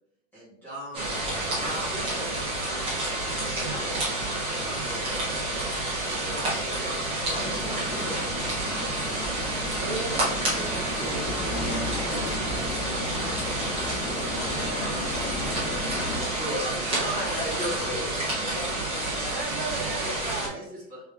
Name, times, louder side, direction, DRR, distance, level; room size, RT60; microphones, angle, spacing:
voice 1, 0.3-1.2 1.5-8.5 14.1-15.0 15.4-18.0 20.0-21.0, equal, 5° left, -12 dB, 1.8 m, -38 dB
sound 1, 0.9-20.5, right 2 dB, 15° right, 1.2 m, -29 dB
sound 2, 7.3-16.2, left 2 dB, 30° left, 1.1 m, -35 dB
voice 2, 9.8-13.2 19.3-20.7, right 5 dB, 40° right, 4 dB, 0.7 m, -38 dB
voice 3, 17.0-19.7, left 2 dB, 70° left, -1 dB, 1.1 m, -39 dB
4.4 x 3.4 x 3.4 m, 0.78 s
supercardioid pair, 175°, 41 cm